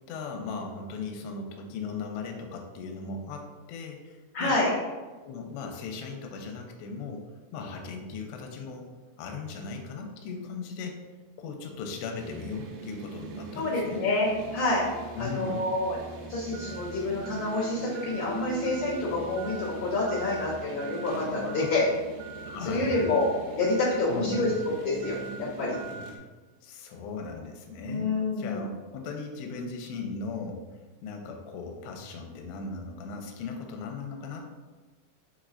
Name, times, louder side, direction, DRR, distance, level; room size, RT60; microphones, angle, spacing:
voice 1, 0.1-4.6 5.2-7.2 7.5-8.9 9.2-11.0 11.4-14.0 15.2-15.6 22.4-23.1 24.1-24.6 26.6-30.6 31.0-34.4, left 4 dB, 85° left, 2 dB, 2.7 m, -37 dB
voice 2, 4.3-4.7 13.5-14.8 15.2-16.0 16.3-21.8 22.6-23.3 23.5-24.5 24.8-25.8 27.8-28.6, left 2 dB, 70° left, -12 dB, 1.1 m, -28 dB
sound 1, 12.2-26.2, right 4 dB, 85° right, 2.7 m, -41 dB
6.2 x 3.1 x 2.5 m, 1.3 s
omnidirectional pair, 4.9 m